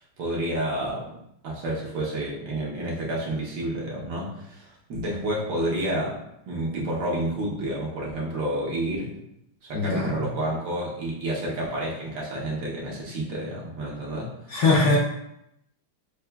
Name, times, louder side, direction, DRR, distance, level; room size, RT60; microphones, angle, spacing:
voice 1, 0.2-1.1 1.4-9.2 9.7-14.3, right 1 dB, 65° right, -4 dB, 1.5 m, -30 dB
voice 2, 9.7-10.2 14.5-15.0, left 3 dB, 65° left, -6 dB, 1.0 m, -21 dB
6.7 x 2.3 x 2.2 m, 0.80 s
omnidirectional pair, 2.4 m